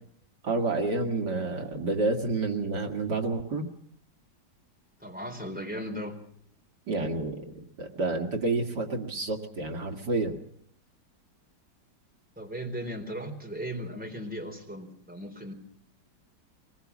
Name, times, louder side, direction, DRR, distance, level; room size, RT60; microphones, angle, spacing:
voice 1, 0.4-3.7 6.9-10.4, right 3 dB, 70° right, 3 dB, 2.7 m, -29 dB
voice 2, 5.0-6.2 12.4-15.5, equal, 5° right, 3 dB, 4.0 m, -37 dB
23.0 x 21.0 x 7.3 m, 0.65 s
omnidirectional pair, 1.9 m